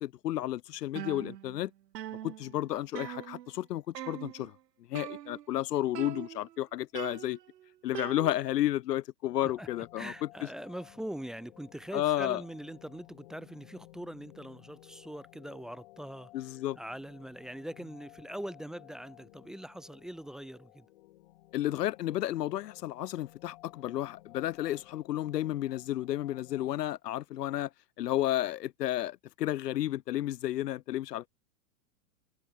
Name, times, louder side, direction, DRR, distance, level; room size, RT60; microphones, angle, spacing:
voice 1, 0.0-1.7 2.2-4.5 4.9-7.4 7.8-10.1 11.9-12.4 16.3-16.8 21.5-27.7 28.0-31.3, left 13 dB, 75° left, 1.0 m, -32 dB
sound 1, 1.0-1.7 2.0-3.6 4.0-4.5 5.0-5.6 6.0-6.6 7.0-8.7, right 12 dB, 85° right, 1.6 m, -42 dB
sound 2, 9.2-27.0, left 17 dB, 40° left, 2.4 m, -56 dB
voice 2, 10.0-20.9, right 1 dB, ahead, 1.0 m, -42 dB
supercardioid pair, 180°, 48 cm